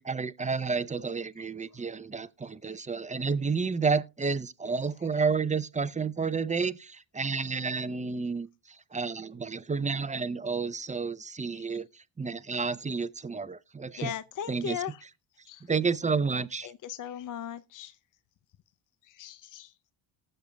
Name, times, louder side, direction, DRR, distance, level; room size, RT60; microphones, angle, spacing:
voice 1, 0.0-14.1 14.5-15.1 15.6-16.7, right 5 dB, 15° right, 0.5 m, -31 dB
voice 2, 14.0-14.9 15.5-15.6 16.8-17.9 19.2-19.7, left 10 dB, 40° left, 0.5 m, -37 dB
19.0 x 6.7 x 2.2 m
cardioid pair, 75°, 50 cm